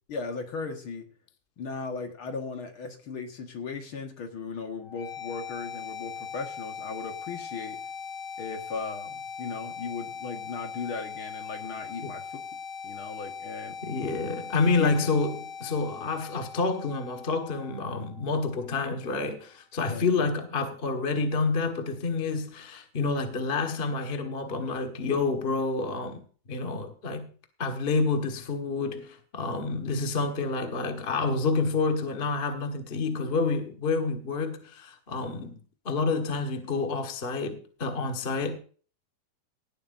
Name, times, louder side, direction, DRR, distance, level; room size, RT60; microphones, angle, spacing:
voice 1, 0.1-1.1 1.6-7.8 8.4-12.3 12.8-13.8 14.8-14.9 19.9-20.1, left 4 dB, 50° left, 2.1 m, -37 dB
sound 1, 4.8-18.8, left 6 dB, 65° left, 3.0 m, -40 dB
voice 2, 13.8-26.2 26.5-27.3 27.6-35.6 35.8-38.6, left 3 dB, 35° left, 1.0 m, -28 dB
18.5 x 12.0 x 2.7 m
omnidirectional pair, 3.5 m